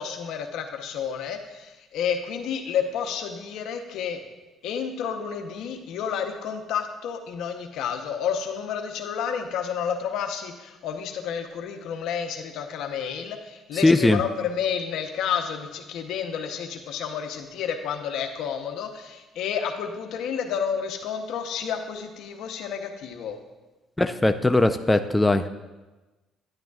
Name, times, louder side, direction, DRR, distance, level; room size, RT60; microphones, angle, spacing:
voice 1, 0.0-4.2 4.6-23.4, left 7 dB, 75° left, 5 dB, 0.8 m, -30 dB
voice 2, 13.7-14.2 24.0-25.5, left 2 dB, 10° left, 8 dB, 0.4 m, -20 dB
10.5 x 8.9 x 2.4 m, 1.2 s
cardioid pair, 85°, 0 cm